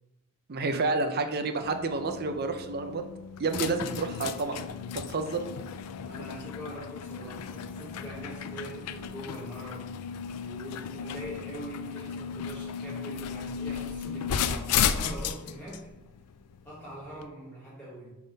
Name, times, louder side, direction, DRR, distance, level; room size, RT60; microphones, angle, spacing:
voice 1, 0.5-3.0 3.4-4.6 4.9-5.4, right 3 dB, 45° right, 7 dB, 0.6 m, -29 dB
sound 1, 1.6-17.3, left 7 dB, 85° left, 0.4 m, -35 dB
voice 2, 6.0-9.9 10.3-15.8 16.6-18.1, right 1 dB, 10° left, -9 dB, 1.4 m, -43 dB
6.2 x 3.6 x 5.3 m, 0.95 s
head